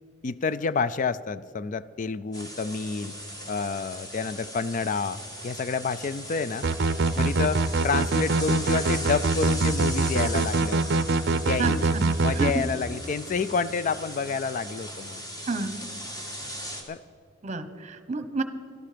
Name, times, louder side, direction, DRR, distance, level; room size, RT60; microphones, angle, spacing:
voice 1, 0.2-3.1 3.5-6.7 7.2-11.0 11.3-11.9 12.2-15.2 16.9-17.0, left 5 dB, 40° left, 15 dB, 0.4 m, -29 dB
sound 1, 2.3-16.8, equal, 20° left, 2.1 m, -38 dB
sound 2, 6.6-12.5, right 3 dB, 55° right, 0.6 m, -24 dB
voice 2, 11.6-12.6 15.4-15.8 17.4-18.4, right 3 dB, 35° right, 11 dB, 1.0 m, -30 dB
17.5 x 12.5 x 5.0 m, 2.4 s
head